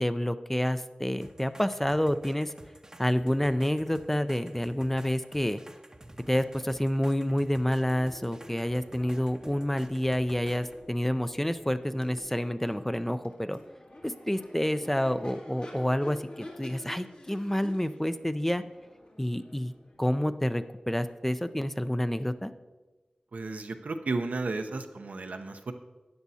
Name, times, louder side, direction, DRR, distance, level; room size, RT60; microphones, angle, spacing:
voice 1, 0.0-2.5 3.0-5.6 6.3-13.6 14.0-18.6 19.2-19.7 20.0-22.5, equal, 10° left, 11 dB, 0.4 m, -28 dB
sound 1, 1.2-10.8 12.2-12.3, right 1 dB, 25° right, 0.7 m, -51 dB
Crowd / Race car auto racing / Accelerating revving vroom, 7.7-21.5, left 1 dB, 65° left, 2.4 m, -49 dB
voice 2, 23.3-25.7, right 3 dB, 85° right, 6 dB, 0.7 m, -33 dB
13.0 x 9.3 x 2.8 m, 1.2 s
wide cardioid pair, 50°, 3 cm